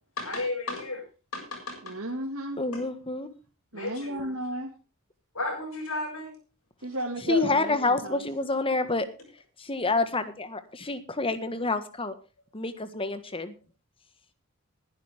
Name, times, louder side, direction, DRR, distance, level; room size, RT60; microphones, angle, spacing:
voice 1, 0.2-1.0 1.3-1.9 2.7-2.8 3.7-4.3 5.3-6.3, left 2 dB, 70° left, 3 dB, 7.1 m, -33 dB
voice 2, 1.8-2.6 3.7-4.7 6.8-8.2, right 1 dB, 70° right, 1 dB, 2.1 m, -33 dB
voice 3, 2.6-3.3 7.3-9.1 9.6-12.1 12.5-13.5, left 3 dB, 25° left, 11 dB, 1.6 m, -28 dB
19.5 x 11.0 x 3.5 m, 0.33 s
head